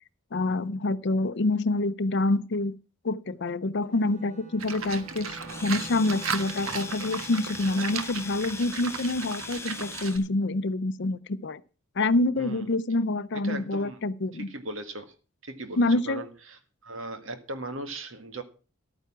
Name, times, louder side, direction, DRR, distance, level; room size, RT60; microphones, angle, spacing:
voice 1, 0.3-2.8 3.0-11.6 12.0-14.5 15.8-16.2, left 2 dB, 55° left, 0.6 m, -27 dB
Bowed string instrument, 3.8-8.4, right 2 dB, 35° right, 2.6 m, -47 dB
Livestock farm animals working animals, 4.6-10.2, right 6 dB, 85° right, 1.4 m, -36 dB
Domestic sounds home sounds, 5.4-10.3, left 4 dB, 15° left, 0.7 m, -41 dB
voice 2, 12.4-12.7 13.3-14.0 14.3-15.1 15.4-18.4, right 2 dB, 65° right, 1.9 m, -38 dB
12.5 x 9.2 x 6.0 m
head